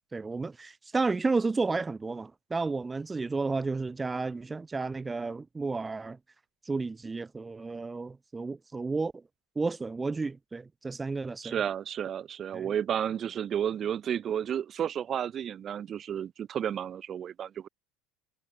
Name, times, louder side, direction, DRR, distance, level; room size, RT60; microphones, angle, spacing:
voice 1, 0.0-6.2 6.6-9.1 9.6-11.6 12.5-12.7, right 3 dB, 15° right, 2.3 m, -32 dB
voice 2, 11.4-17.7, right 9 dB, 35° right, 4.8 m, -32 dB
supercardioid pair, 115°, 0 cm